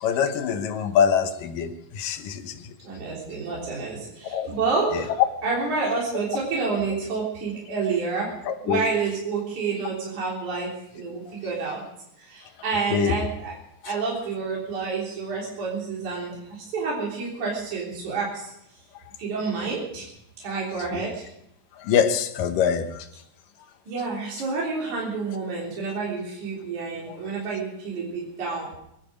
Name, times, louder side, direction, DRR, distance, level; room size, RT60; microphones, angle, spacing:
voice 1, 0.0-1.7 2.0-2.4 4.3-4.5 8.7-8.8 12.9-13.1 21.9-22.9, left 7 dB, 90° left, 8 dB, 2.8 m, -23 dB
voice 2, 2.8-8.3 8.6-11.8 12.2-13.6 13.8-18.5 19.2-20.1 20.4-21.2 23.9-28.7, right 4 dB, 65° right, -5 dB, 5.0 m, -29 dB
23.0 x 11.0 x 5.2 m, 0.78 s
omnidirectional pair, 3.8 m